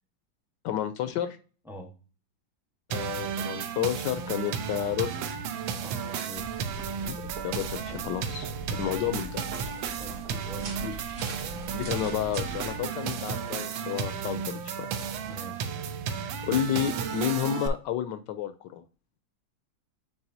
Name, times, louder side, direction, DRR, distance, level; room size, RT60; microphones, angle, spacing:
voice 1, 0.6-1.4 2.9-5.2 7.0-9.5 11.7-14.9 16.4-18.8, left 11 dB, 75° left, 11 dB, 1.2 m, -31 dB
sound 1, 2.9-17.7, right 7 dB, 85° right, 1.5 m, -33 dB
voice 2, 5.8-6.5 10.0-11.0 15.3-15.7, left 1 dB, ahead, 2 dB, 0.7 m, -43 dB
sound 2, 6.4-12.8, right 2 dB, 45° right, 1.2 m, -42 dB
8.8 x 4.0 x 2.7 m, 0.36 s
omnidirectional pair, 2.1 m